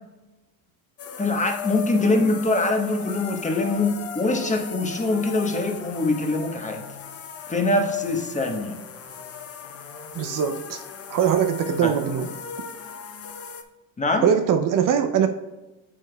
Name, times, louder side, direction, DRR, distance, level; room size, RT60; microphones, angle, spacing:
sound 1, 1.0-13.6, left 7 dB, 30° left, 0.7 m, -38 dB
voice 1, 1.2-6.8 7.5-8.8 11.8-11.9 14.0-14.2, left 2 dB, 15° left, 3 dB, 1.1 m, -23 dB
voice 2, 10.1-10.8 11.1-12.3 14.2-15.3, right 8 dB, 45° right, 6 dB, 0.6 m, -22 dB
8.7 x 6.2 x 2.3 m, 1.1 s
supercardioid pair, 90°, 45 cm